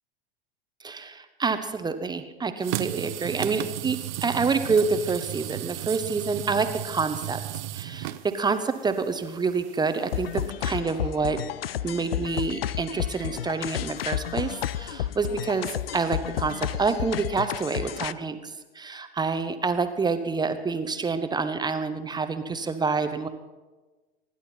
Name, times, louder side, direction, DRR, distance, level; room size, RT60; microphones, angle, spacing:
voice 1, 0.8-7.4 7.7-11.4 11.8-23.3, right 4 dB, 15° right, 9 dB, 1.1 m, -27 dB
sound 1, 2.6-10.5, right 15 dB, 45° right, 0.8 m, -35 dB
sound 2, 10.1-18.1, left 11 dB, 65° left, 0.6 m, -31 dB
25.0 x 11.0 x 4.4 m, 1.2 s
figure-of-eight pair, 85°, 31 cm